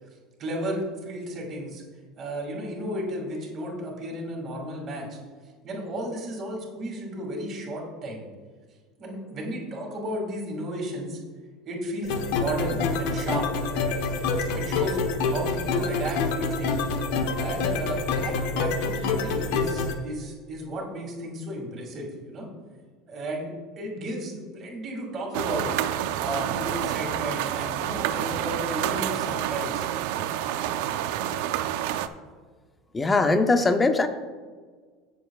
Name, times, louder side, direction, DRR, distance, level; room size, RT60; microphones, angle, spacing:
voice 1, 0.4-1.8 2.2-5.2 5.6-8.3 9.0-11.2 11.7-13.5 14.5-15.0 15.3-16.7 17.3-22.5 23.1-25.7 26.1-29.9, right 1 dB, 25° right, -2 dB, 2.2 m, -33 dB
sound 1, 12.0-19.9, left 4 dB, 70° left, 1.0 m, -27 dB
sound 2, 25.3-32.1, right 11 dB, 70° right, 0.5 m, -28 dB
voice 2, 32.9-34.1, left 3 dB, 10° left, 8 dB, 0.5 m, -21 dB
17.0 x 6.8 x 2.4 m, 1.5 s
cardioid pair, 175°, 0 cm